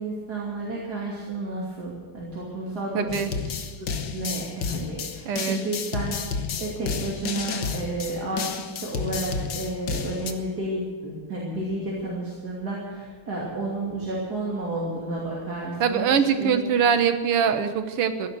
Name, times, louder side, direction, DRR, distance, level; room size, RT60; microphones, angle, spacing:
voice 1, 0.0-3.6 3.9-6.2 6.6-16.6, right 2 dB, 45° right, -5 dB, 3.3 m, -31 dB
voice 2, 3.0-3.3 5.3-5.6 15.8-18.3, right 7 dB, 85° right, 9 dB, 2.1 m, -23 dB
sound 1, 3.1-10.3, left 5 dB, 55° left, 1.6 m, -31 dB
16.0 x 11.0 x 7.9 m, 1.4 s
omnidirectional pair, 2.4 m